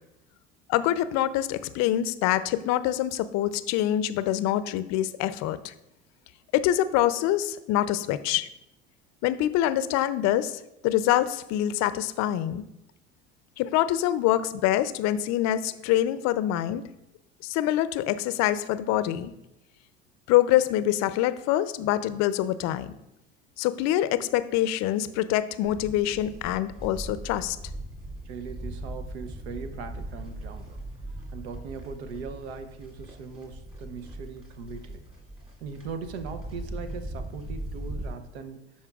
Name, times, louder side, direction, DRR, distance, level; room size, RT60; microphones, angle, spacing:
voice 1, 0.7-5.7 6.5-8.5 9.2-12.6 13.6-16.8 17.4-19.3 20.3-22.9 23.6-27.6, left 13 dB, 55° left, 14 dB, 0.5 m, -25 dB
Livestock farm animals working animals, 25.6-38.1, right 1 dB, 20° right, 2.2 m, -39 dB
voice 2, 28.2-30.8 31.3-35.0 35.6-38.6, right 5 dB, 85° right, 9 dB, 0.7 m, -39 dB
12.5 x 4.3 x 2.3 m, 0.88 s
hypercardioid pair, 80°, 32 cm